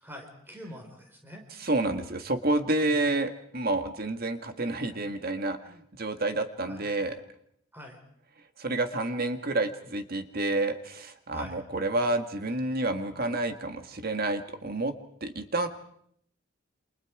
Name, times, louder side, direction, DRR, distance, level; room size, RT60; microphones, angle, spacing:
voice 1, 0.0-1.4 2.8-3.1 6.7-6.9 7.7-8.0 11.3-11.6, equal, 10° right, 2 dB, 4.8 m, -45 dB
voice 2, 1.5-7.2 8.6-14.9 15.2-15.7, right 2 dB, 45° right, 8 dB, 1.7 m, -29 dB
28.5 x 27.5 x 4.9 m, 0.69 s
head